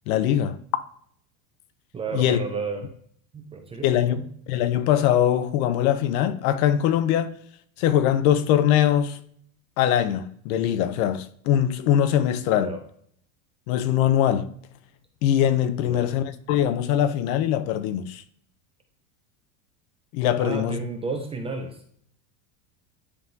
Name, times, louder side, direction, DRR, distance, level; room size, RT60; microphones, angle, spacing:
voice 1, 0.1-0.6 2.1-2.4 3.8-4.2 4.5-7.3 7.8-9.2 9.8-12.7 13.7-14.5 15.2-18.2 20.1-20.8, left 10 dB, 65° left, 0.7 m, -22 dB
voice 2, 1.9-2.8 3.3-4.3 12.5-12.8 15.8-16.1 20.4-21.8, right 4 dB, 15° right, 0.4 m, -32 dB
9.8 x 3.5 x 2.7 m
supercardioid pair, 145°, 45 cm